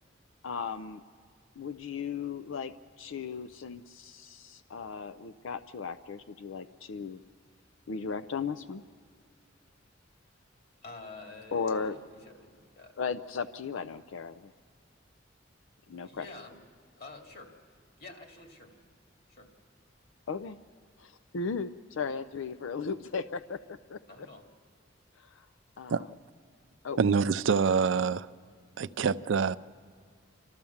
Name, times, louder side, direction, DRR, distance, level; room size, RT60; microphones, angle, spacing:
voice 1, 0.4-1.0 1.6-7.2 7.9-8.8 11.5-12.0 13.0-14.5 15.9-16.3 20.3-20.6 21.0-24.0 25.2-25.5 25.8-26.1 26.8-27.0, left 5 dB, 90° left, 0.5 m, -36 dB
voice 2, 10.8-12.9 16.0-16.6 17.0-17.5 18.0-18.7 19.3-19.5 24.1-24.4, left 3 dB, 55° left, 2.5 m, -48 dB
voice 3, 27.0-28.3 28.8-29.6, right 5 dB, 70° right, 0.4 m, -26 dB
29.0 x 13.5 x 7.1 m
head